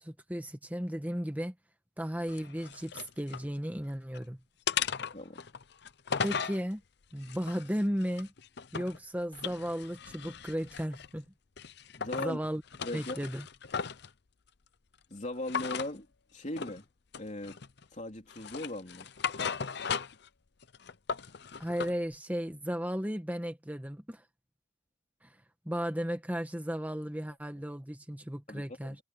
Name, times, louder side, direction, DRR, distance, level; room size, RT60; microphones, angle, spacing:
voice 1, 0.0-1.5 2.0-4.4 6.2-6.8 7.1-8.3 8.7-11.2 12.2-12.6 12.9-13.4 21.6-24.2 25.2-25.3 25.6-29.0, equal, 10° right, 1.5 m, -35 dB
sound 1, 2.3-3.5 3.9-4.2 4.7-6.6 7.2-9.0 9.3-11.2 11.6-12.3 12.7-14.1 15.5-15.9 16.6-16.8 17.1-17.8 18.3-20.3 20.6-21.9, left 6 dB, 55° left, 0.7 m, -37 dB
voice 2, 5.1-5.5 12.0-12.4 12.8-13.2 15.1-16.1 16.3-16.9 17.2-17.6 17.9-19.1 28.5-29.0, left 1 dB, 40° left, 3.5 m, -39 dB
head